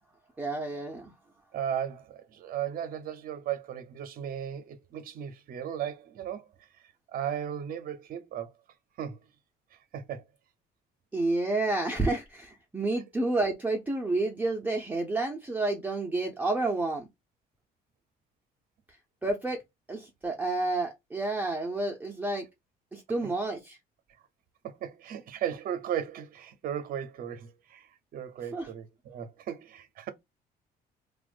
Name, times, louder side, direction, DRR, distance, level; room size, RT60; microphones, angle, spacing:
voice 1, 0.4-1.1 11.1-17.1 19.2-19.6 19.9-22.4 22.9-23.8 28.5-28.7, right 2 dB, 10° right, 0.5 m, -30 dB
voice 2, 1.5-6.5 7.1-8.5 9.0-9.2 9.7-10.2 23.2-23.3 24.6-30.1, right 9 dB, 60° right, 0.6 m, -36 dB
2.5 x 2.2 x 2.4 m
cardioid pair, 110°, 17 cm